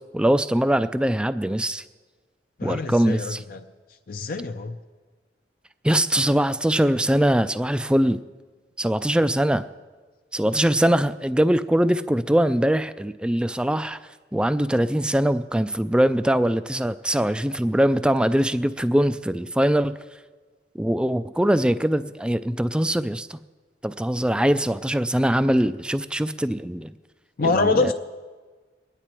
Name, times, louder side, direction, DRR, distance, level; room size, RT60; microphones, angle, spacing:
voice 1, 0.1-1.8 2.6-3.4 5.8-8.2 8.8-9.6 10.3-14.0 14.3-19.9 20.7-23.4 23.8-26.9 27.4-27.9, right 1 dB, 5° right, 13 dB, 0.3 m, -22 dB
voice 2, 2.6-3.6 4.1-4.8 27.4-27.9, left 3 dB, 55° left, 6 dB, 0.5 m, -24 dB
22.0 x 9.9 x 4.4 m, 1.4 s
head